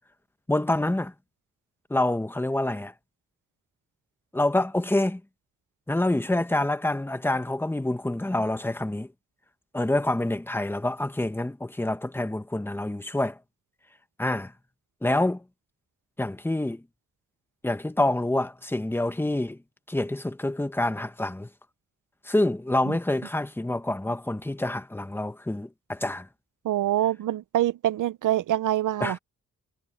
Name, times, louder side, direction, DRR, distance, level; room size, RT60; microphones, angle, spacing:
voice 1, 0.5-1.1 1.9-2.9 4.3-5.2 5.9-9.1 9.7-13.4 14.2-14.5 15.0-15.4 16.2-16.8 17.6-19.6 19.9-21.5 22.3-26.3 29.0-29.2, left 1 dB, 5° left, 1.1 m, -27 dB
voice 2, 26.6-29.2, right 13 dB, 85° right, 0.6 m, -25 dB
wide cardioid pair, 125°, 30 cm